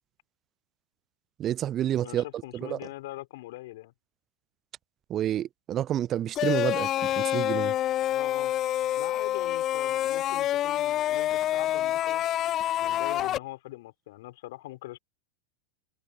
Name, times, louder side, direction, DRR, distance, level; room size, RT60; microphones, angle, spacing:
voice 1, 1.4-2.8 5.1-7.7, right 11 dB, 30° right, 0.4 m, -29 dB
voice 2, 2.0-3.9 8.1-8.5 9.0-12.2 12.8-15.0, left 18 dB, 50° left, 3.1 m, -42 dB
sound 1, 6.3-13.4, left 12 dB, 30° left, 0.4 m, -27 dB
figure-of-eight pair, 90°, 0 cm